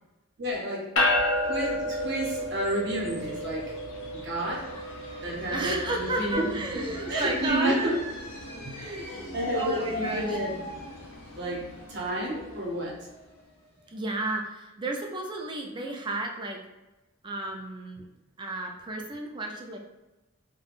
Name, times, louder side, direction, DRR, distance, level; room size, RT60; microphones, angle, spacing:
voice 1, 0.4-0.9 1.4-3.7 4.1-4.7 5.2-6.5 6.7-8.0 8.6-10.5 11.3-11.6 11.9-12.9, right 1 dB, 60° right, -2 dB, 0.8 m, -30 dB
sound 1, 1.0-12.5, left 1 dB, 80° left, 0.6 m, -33 dB
sound 2, 4.5-14.0, equal, 35° left, 0.9 m, -41 dB
voice 2, 5.5-7.9 8.7-9.2 9.5-10.4 13.9-16.6 17.2-18.0 18.4-19.8, right 2 dB, 25° right, 2 dB, 0.4 m, -32 dB
3.3 x 2.2 x 2.4 m, 1.0 s
head